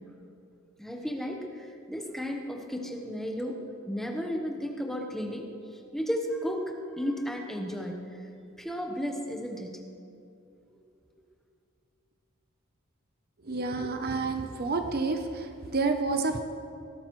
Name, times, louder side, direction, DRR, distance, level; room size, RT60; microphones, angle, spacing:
voice 1, 0.8-3.6 3.9-5.5 5.9-8.3 8.6-9.8 10.7-10.8, equal, ahead, 2 dB, 1.0 m, -34 dB
voice 2, 13.4-16.4, right 3 dB, 45° right, 6 dB, 0.7 m, -29 dB
18.5 x 12.5 x 3.1 m, 2.6 s
head